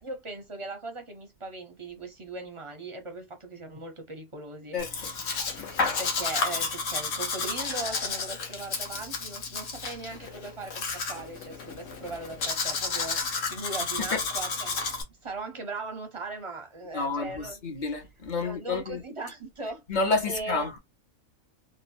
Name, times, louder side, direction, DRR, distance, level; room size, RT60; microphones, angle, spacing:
voice 1, 0.0-5.3 6.0-14.9 15.2-17.6 18.4-20.6, right 2 dB, 35° right, 0.5 m, -39 dB
voice 2, 4.7-5.1 14.0-14.2 16.9-19.0 19.9-20.8, left 3 dB, 40° left, 0.8 m, -29 dB
Domestic sounds home sounds, 4.8-15.0, left 4 dB, 65° left, 1.2 m, -32 dB
3.1 x 2.2 x 2.6 m
omnidirectional pair, 1.5 m